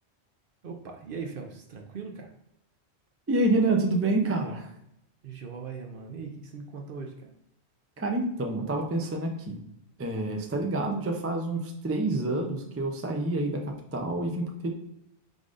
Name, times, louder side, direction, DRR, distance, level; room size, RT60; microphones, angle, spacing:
voice 1, 0.6-2.3 5.2-7.3, right 5 dB, 60° right, 3 dB, 0.8 m, -40 dB
voice 2, 3.3-4.7 8.0-9.6 10.0-13.6 13.9-14.7, right 2 dB, 20° right, 2 dB, 0.4 m, -27 dB
4.8 x 3.9 x 2.5 m, 0.81 s
omnidirectional pair, 1.1 m